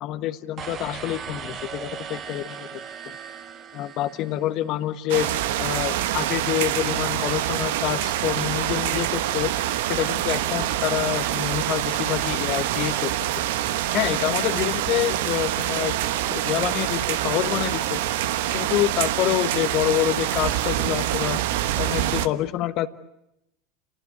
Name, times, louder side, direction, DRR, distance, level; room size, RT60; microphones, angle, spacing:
voice 1, 0.0-3.2 3.7-5.3 5.6-9.5 9.9-13.1 13.9-16.0 16.3-18.0 18.5-21.4 21.8-22.9, left 14 dB, 50° left, 10 dB, 1.2 m, -27 dB
sound 1, 0.6-4.8, right 7 dB, 40° right, 2.3 m, -38 dB
sound 2, 5.1-22.3, right 13 dB, 65° right, 1.2 m, -25 dB
28.0 x 19.0 x 9.2 m, 0.84 s
hypercardioid pair, 85°, 0 cm